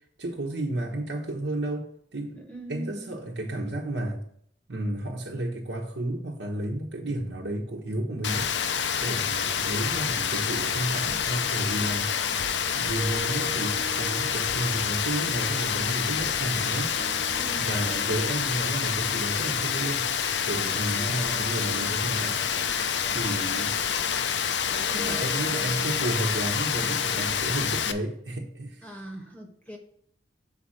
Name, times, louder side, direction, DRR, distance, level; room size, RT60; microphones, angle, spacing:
voice 1, 0.2-4.2 4.7-8.5 9.0-12.3 12.7-17.0 17.6-20.0 20.4-22.5 23.1-23.8 24.9-28.9, right 1 dB, 75° right, 1.1 m, -32 dB
voice 2, 2.3-3.2 17.3-18.1 24.7-25.4 26.8-27.1 28.8-29.8, right 1 dB, 10° left, 0.9 m, -44 dB
Rain, 8.2-27.9, left 7 dB, 80° left, 0.6 m, -27 dB
sound 1, 13.0-29.0, right 2 dB, 25° right, 0.4 m, -44 dB
6.9 x 4.2 x 6.4 m
head